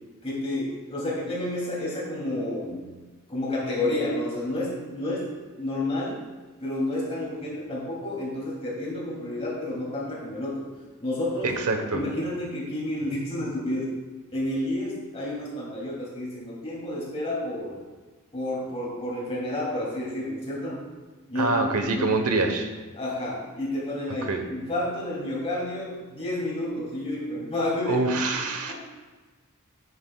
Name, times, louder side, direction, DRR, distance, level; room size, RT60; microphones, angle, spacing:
voice 1, 0.2-2.8 3.3-5.3 5.6-6.2 6.6-10.7 11.0-11.5 11.9-13.9 14.3-17.8 18.3-20.8 21.3-21.6 21.9-22.2 22.9-28.0 28.3-28.4 28.7-28.8, left 1 dB, 25° left, -5 dB, 2.8 m, -30 dB
voice 2, 11.4-12.0 21.3-22.7 24.3-24.4 27.9-28.7, right 3 dB, 90° right, 5 dB, 1.1 m, -25 dB
9.6 x 9.4 x 2.3 m, 1.3 s
head